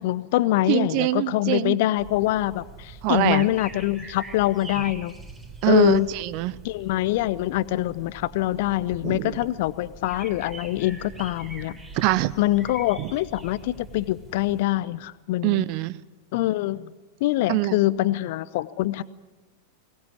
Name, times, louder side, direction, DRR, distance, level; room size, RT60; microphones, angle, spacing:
voice 1, 0.0-5.1 5.7-6.1 6.6-11.8 12.4-15.7 16.3-16.9 17.2-19.0, left 16 dB, 50° left, 18 dB, 0.8 m, -24 dB
voice 2, 0.7-1.8 3.0-3.5 5.6-6.5 9.0-9.4 11.9-12.3 13.0-13.1 15.4-16.0 17.5-17.8, right 16 dB, 45° right, 18 dB, 0.8 m, -23 dB
sound 1, 2.0-14.6, right 2 dB, 15° right, 3.5 m, -43 dB
22.5 x 18.5 x 9.7 m, 1.2 s
figure-of-eight pair, 90°, 0 cm